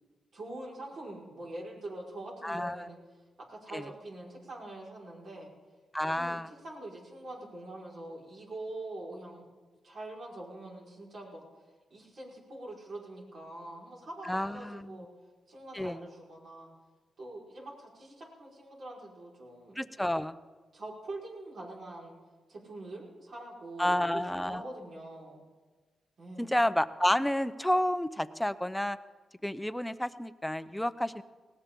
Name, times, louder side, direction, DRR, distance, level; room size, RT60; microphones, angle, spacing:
voice 1, 0.3-3.0 3.5-5.5 6.1-9.5 9.8-11.4 11.9-15.1 15.5-16.7 17.2-20.1 20.7-22.2 22.5-25.4 26.2-26.5, right 2 dB, 60° right, -3 dB, 5.0 m, -44 dB
voice 2, 2.4-2.9 3.7-3.8 5.9-6.5 14.3-15.0 15.7-16.0 19.8-20.3 23.8-24.6 26.4-29.0 29.4-31.2, left 1 dB, 5° left, 13 dB, 0.7 m, -30 dB
19.5 x 18.0 x 3.8 m, 1.4 s
cardioid pair, 80°, 0 cm